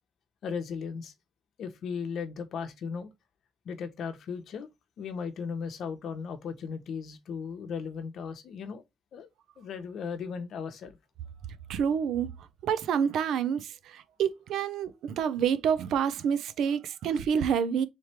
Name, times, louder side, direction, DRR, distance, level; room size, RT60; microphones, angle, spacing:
voice 1, 0.4-1.1 1.6-3.1 3.6-4.7 5.0-8.8 9.1-9.3 9.6-11.0, left 6 dB, 70° left, 0.9 m, -36 dB
voice 2, 11.7-12.3 12.6-17.8, right 7 dB, 90° right, 0.5 m, -28 dB
3.5 x 3.2 x 4.3 m
cardioid pair, 120°, 0 cm